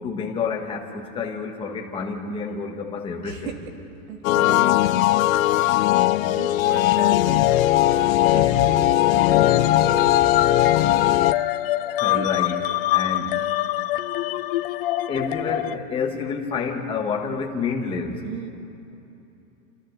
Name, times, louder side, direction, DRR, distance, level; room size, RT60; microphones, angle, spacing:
voice 1, 0.0-3.5 11.9-12.6 12.9-13.3 15.1-18.2, left 5 dB, 15° left, 1 dB, 1.4 m, -28 dB
voice 2, 3.2-3.7 4.1-5.6 5.9-10.5 10.9-11.4 11.7-12.6 13.1-13.8 18.2-18.5, right 4 dB, 50° right, 3 dB, 2.6 m, -37 dB
sound 1, 4.2-11.3, left 15 dB, 75° left, 0.7 m, -19 dB
sound 2, 9.2-15.8, left 14 dB, 45° left, 0.5 m, -25 dB
29.5 x 13.5 x 6.7 m, 2.9 s
supercardioid pair, 175°, 41 cm